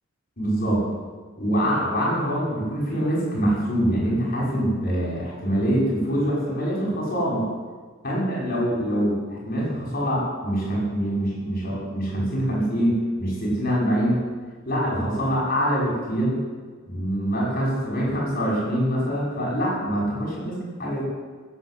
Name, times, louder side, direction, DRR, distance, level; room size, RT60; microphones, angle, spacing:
voice 1, 0.4-0.9 1.4-7.5 8.0-9.2 9.4-14.2 14.7-16.4 16.9-21.0, equal, 45° left, -5 dB, 6.1 m, -24 dB
16.5 x 8.1 x 8.6 m, 1.5 s
head